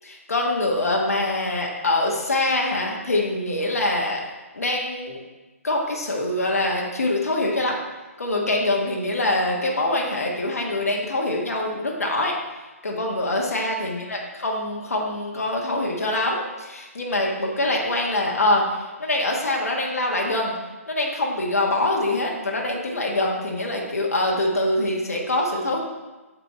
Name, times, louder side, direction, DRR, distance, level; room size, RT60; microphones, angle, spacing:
voice 1, 0.0-4.3 4.5-5.2 5.6-7.8 8.2-12.3 12.8-20.5 20.9-25.8, left 2 dB, 80° left, -1 dB, 1.4 m, -24 dB
6.8 x 4.5 x 4.4 m, 1.2 s
figure-of-eight pair, 135°, 8 cm